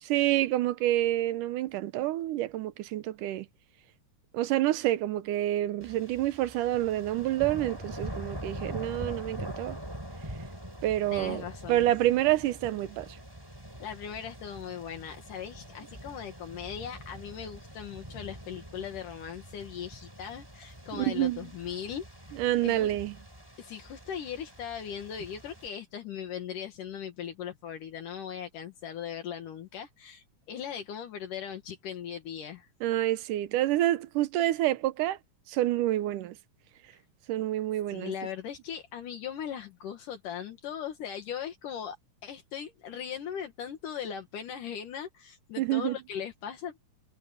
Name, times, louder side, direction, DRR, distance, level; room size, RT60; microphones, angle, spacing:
voice 1, 0.1-3.5 4.3-9.8 10.8-13.2 20.9-21.5 22.3-23.2 32.8-35.2 35.5-36.4 37.3-38.1 45.6-46.0, right 14 dB, 75° right, 2.4 m, -28 dB
sound 1, 5.8-25.7, equal, 5° right, 6.7 m, -44 dB
voice 2, 11.1-11.9 13.8-22.0 22.6-22.9 23.6-32.7 37.9-42.0 42.2-46.8, left 8 dB, 75° left, 3.2 m, -39 dB
omnidirectional pair, 3.8 m